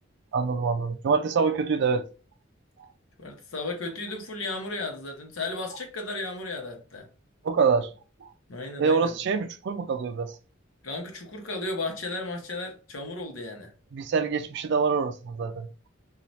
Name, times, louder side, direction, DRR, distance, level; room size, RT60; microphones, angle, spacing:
voice 1, 0.3-2.1 2.8-2.9 7.4-7.9 8.2-8.3 8.8-10.4 13.9-15.7, right 5 dB, 60° right, 0.4 m, -25 dB
voice 2, 3.2-7.1 8.5-9.1 10.8-13.7, left 2 dB, 85° left, 0.8 m, -34 dB
3.0 x 2.4 x 2.6 m
head